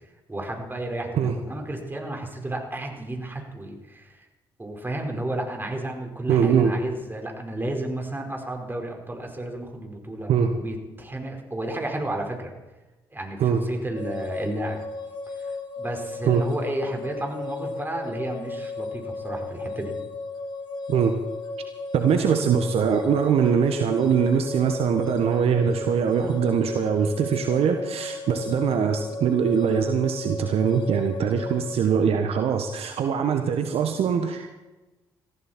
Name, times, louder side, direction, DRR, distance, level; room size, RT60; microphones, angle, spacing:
voice 1, 0.3-4.3 4.6-12.5 13.1-14.8 15.4-19.9, right 1 dB, 20° right, 2 dB, 4.9 m, -32 dB
voice 2, 6.3-6.8 10.3-10.6 13.4-13.7 16.2-16.5 20.9-21.2 21.9-34.5, right 7 dB, 60° right, 6 dB, 1.4 m, -22 dB
sound 1, 13.9-31.7, left 3 dB, 45° left, 2.9 m, -35 dB
20.5 x 14.5 x 4.5 m, 1.1 s
hypercardioid pair, 45°, 12 cm